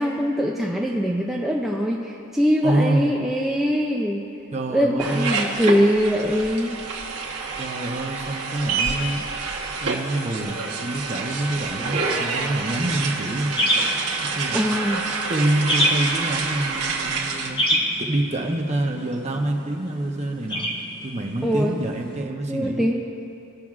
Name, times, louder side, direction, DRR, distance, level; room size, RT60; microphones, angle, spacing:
voice 1, 0.0-4.3 4.7-6.8 11.8-11.9 14.5-15.1 21.4-21.8 22.5-23.0, equal, ahead, -3 dB, 0.4 m, -22 dB
voice 2, 2.6-3.1 4.5-5.5 7.6-9.2 9.8-13.6 14.3-14.6 15.3-22.8, right 1 dB, 30° right, 2 dB, 0.7 m, -26 dB
sound 1, 5.0-17.5, right 4 dB, 85° right, 0.9 m, -28 dB
sound 2, 12.9-22.2, equal, 25° left, 1.1 m, -29 dB
17.5 x 5.9 x 2.4 m, 2.8 s
head